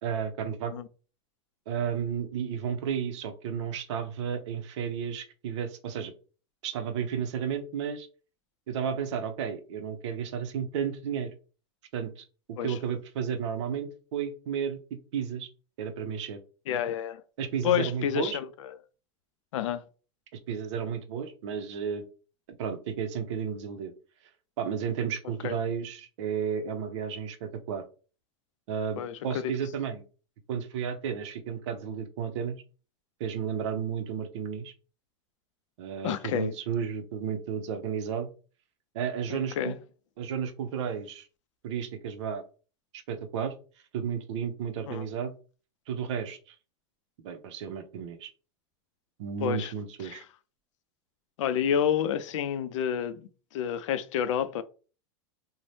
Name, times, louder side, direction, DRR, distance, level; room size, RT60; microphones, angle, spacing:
voice 1, 0.0-0.7 1.7-6.1 6.6-8.1 8.7-11.3 11.9-15.5 15.8-16.4 17.4-18.4 20.5-22.0 22.6-23.9 24.6-27.8 28.7-30.0 30.5-32.6 33.2-34.7 35.8-38.3 38.9-39.7 40.2-41.3 41.6-42.4 42.9-43.5 43.9-45.3 45.9-46.6 47.2-48.3 49.2-50.2, right 7 dB, 70° right, 0.6 m, -33 dB
voice 2, 16.7-17.2 17.6-18.5 19.5-19.8 25.4-25.6 29.0-29.5 36.0-36.5 39.3-39.8 44.9-45.0 49.4-49.7 50.0-50.2 51.4-54.6, left 9 dB, 90° left, 0.4 m, -29 dB
2.7 x 2.1 x 3.2 m
supercardioid pair, 155°, 16 cm